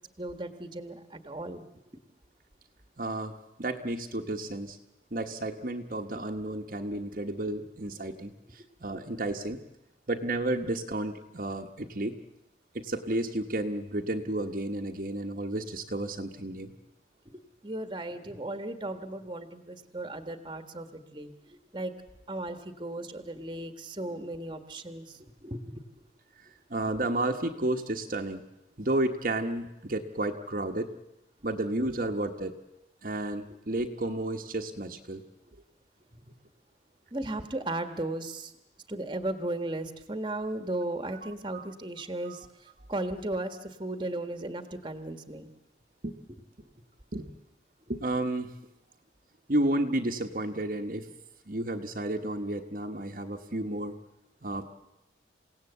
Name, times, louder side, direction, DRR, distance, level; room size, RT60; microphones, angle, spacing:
voice 1, 0.2-1.6 8.9-9.0 17.2-22.0 22.3-25.8 37.1-38.5 38.9-45.5, right 1 dB, 25° right, 9 dB, 1.5 m, -36 dB
voice 2, 3.0-3.3 3.6-4.8 5.1-9.6 10.1-12.2 12.7-16.7 26.7-28.4 28.8-30.9 31.4-32.5 33.0-35.2 41.5-41.7 42.2-42.4 46.0-46.1 47.1-47.3 47.9-48.5 49.5-51.1 51.5-53.9 54.4-54.6, right 1 dB, 50° right, 3 dB, 1.2 m, -32 dB
28.5 x 17.5 x 8.2 m, 0.92 s
head